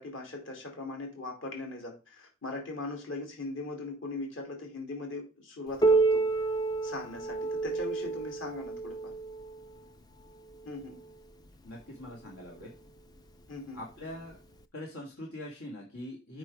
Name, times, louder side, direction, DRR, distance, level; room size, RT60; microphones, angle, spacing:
voice 1, 0.0-6.3 6.8-9.1 10.6-11.0 13.5-13.8, left 2 dB, 60° left, 1 dB, 2.7 m, -40 dB
Piano, 5.8-11.1 12.0-12.1 12.6-12.7 13.5-13.6 14.6-14.7, right 3 dB, 20° left, 0.4 m, -29 dB
voice 2, 11.6-12.7 13.7-14.4 14.7-16.4, left 1 dB, 80° left, -1 dB, 2.2 m, -43 dB
6.0 x 5.5 x 4.9 m, 0.31 s
head